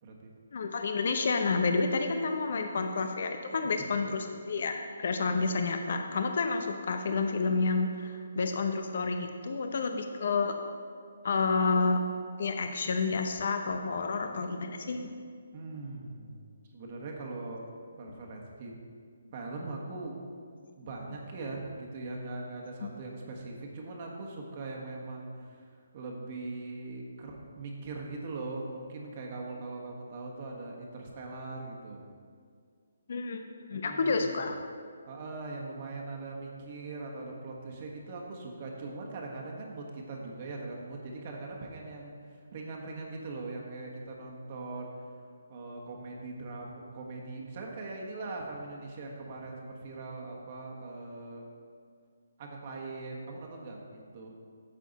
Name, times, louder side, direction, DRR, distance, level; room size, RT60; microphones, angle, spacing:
voice 1, 0.0-0.3 3.6-3.9 15.5-16.4 16.7-17.6 18.0-18.8 19.3-20.2 20.8-32.0 33.7-34.4 35.1-44.9 45.5-51.4 52.4-54.3, right 3 dB, 40° right, -1 dB, 1.3 m, -41 dB
voice 2, 0.5-10.5 11.2-12.0 12.4-15.1 22.8-22.9 33.1-33.4 33.7-34.6, left 4 dB, 60° left, 6 dB, 0.7 m, -29 dB
9.0 x 7.4 x 4.1 m, 2.1 s
hypercardioid pair, 155°, 0 cm